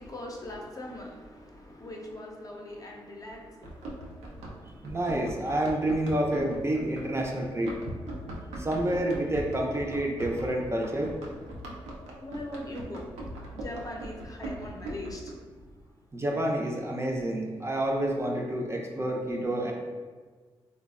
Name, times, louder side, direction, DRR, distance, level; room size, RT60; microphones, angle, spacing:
voice 1, 0.0-5.0 8.2-8.3 12.2-13.0 13.5-15.3, left 1 dB, 35° left, -1 dB, 0.6 m, -41 dB
Run, 3.6-15.3, right 1 dB, 85° right, 0.4 m, -40 dB
voice 2, 4.8-7.7 8.6-11.2 16.1-19.7, right 1 dB, 25° right, 0 dB, 0.5 m, -29 dB
3.2 x 2.1 x 2.4 m, 1.5 s
supercardioid pair, 45°, 11 cm